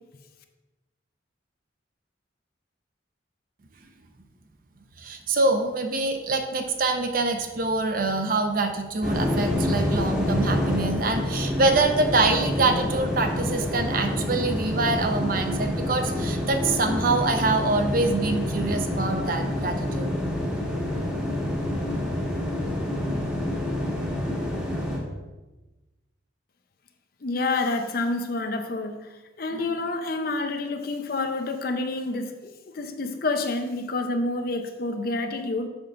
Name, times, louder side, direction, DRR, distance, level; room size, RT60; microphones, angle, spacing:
voice 1, 5.0-20.2, right 3 dB, 45° right, 6 dB, 0.6 m, -25 dB
sound 1, 9.0-25.0, left 1 dB, 5° right, 1.1 m, -27 dB
voice 2, 27.2-29.0 29.4-35.7, left 2 dB, 50° left, 6 dB, 0.6 m, -28 dB
7.0 x 3.9 x 5.6 m, 1.1 s
head